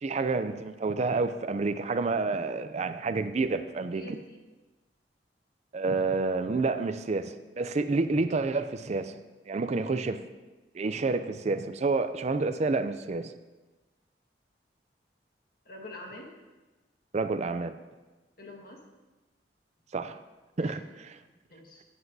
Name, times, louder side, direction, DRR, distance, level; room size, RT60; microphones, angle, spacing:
voice 1, 0.0-4.2 5.7-9.2 9.5-10.2 10.7-13.3 17.1-17.8 19.9-20.2 20.6-21.2, right 3 dB, 40° right, 10 dB, 0.4 m, -29 dB
voice 2, 3.9-4.4 15.6-16.3 18.4-18.8 20.6-20.8 21.2-21.8, left 1 dB, 55° left, 1 dB, 1.7 m, -46 dB
15.0 x 7.9 x 2.7 m, 1.2 s
head